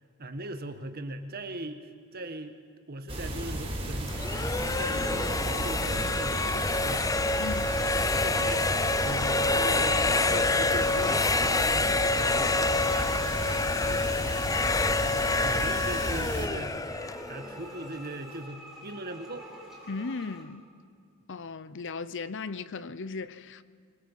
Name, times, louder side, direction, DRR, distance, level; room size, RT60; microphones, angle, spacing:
voice 1, 0.2-2.5 2.9-5.1 5.6-7.1 7.6-14.3 15.1-16.8 17.3-19.5, right 1 dB, 45° right, 1.6 m, -40 dB
sound 1, 3.1-16.5, right 1 dB, 25° right, 4.7 m, -34 dB
sound 2, 4.1-17.9, left 3 dB, 15° left, 0.5 m, -27 dB
sound 3, 6.0-20.4, right 1 dB, ahead, 4.6 m, -50 dB
voice 2, 7.4-7.7 19.9-20.6 21.3-23.6, left 4 dB, 55° left, 0.8 m, -36 dB
24.5 x 22.0 x 7.5 m
head